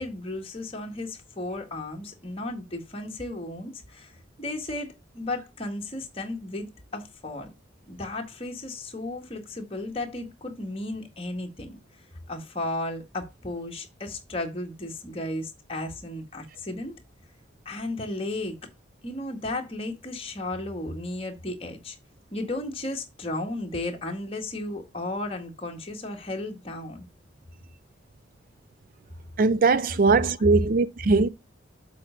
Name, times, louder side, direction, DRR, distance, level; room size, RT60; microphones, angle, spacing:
voice 1, 0.0-4.1 4.4-7.5 7.9-11.8 12.3-17.0 17.6-18.6 19.0-22.0 22.3-27.0, left 2 dB, 30° left, 1.7 m, -34 dB
voice 2, 29.4-31.3, right 4 dB, 45° right, 0.4 m, -20 dB
7.5 x 4.4 x 5.1 m
head